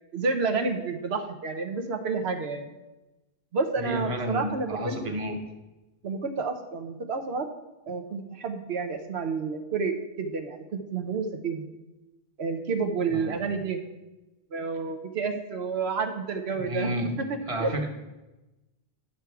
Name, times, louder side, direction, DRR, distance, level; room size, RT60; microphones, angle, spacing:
voice 1, 0.1-2.7 3.5-5.0 6.0-7.5 7.9-11.7 12.4-13.8 14.5-16.9 17.6-17.7, right 4 dB, 85° right, 5 dB, 1.1 m, -30 dB
voice 2, 3.8-5.4 13.1-13.4 16.5-17.1 17.5-17.9, right 1 dB, 30° right, 3 dB, 1.2 m, -31 dB
10.0 x 6.1 x 4.6 m, 1.0 s
omnidirectional pair, 1.0 m